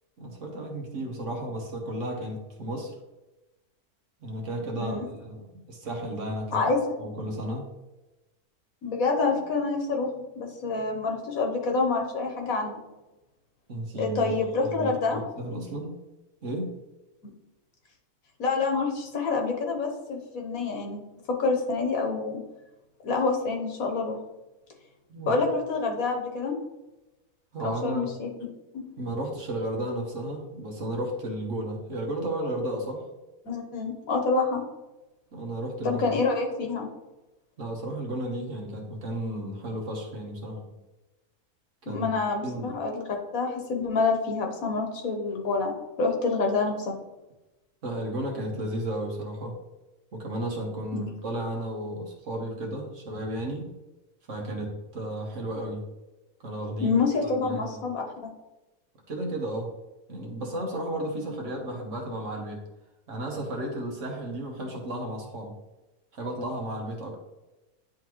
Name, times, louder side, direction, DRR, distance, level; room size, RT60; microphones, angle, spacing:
voice 1, 0.2-2.9 4.2-6.6 7.0-7.7 13.7-14.4 14.6-15.9 16.4-16.7 25.1-25.4 27.5-28.1 29.0-33.1 35.3-36.1 37.6-40.8 41.8-42.1 42.4-42.8 47.8-49.6 50.1-53.7 54.3-55.9 56.4-57.0 57.3-57.8 59.1-59.7 60.1-62.6 63.1-65.6 66.1-67.2, right 1 dB, 55° right, 1 dB, 1.5 m, -33 dB
voice 2, 8.8-10.1 10.3-12.8 14.0-15.2 18.4-21.0 21.4-22.4 23.0-24.2 25.3-26.5 27.6-28.3 28.7-28.8 33.5-34.6 35.8-36.9 41.9-43.0 43.3-46.9 50.9-51.1 56.8-58.0, left 4 dB, 65° left, 1 dB, 1.5 m, -27 dB
9.9 x 3.9 x 3.0 m, 1.0 s
omnidirectional pair, 1.6 m